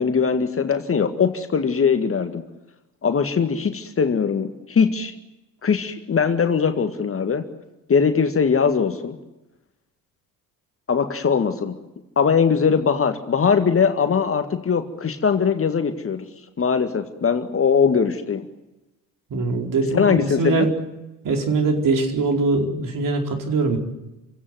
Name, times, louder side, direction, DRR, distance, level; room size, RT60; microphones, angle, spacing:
voice 1, 0.0-2.4 3.0-5.1 5.6-7.4 7.9-9.2 10.9-11.8 12.2-16.3 16.6-18.4 19.9-20.7, left 6 dB, 25° left, 7 dB, 1.9 m, -21 dB
voice 2, 19.3-20.7 21.2-23.8, right 3 dB, 40° right, 3 dB, 4.7 m, -22 dB
28.5 x 17.0 x 9.3 m, 1.0 s
figure-of-eight pair, 55°, 48 cm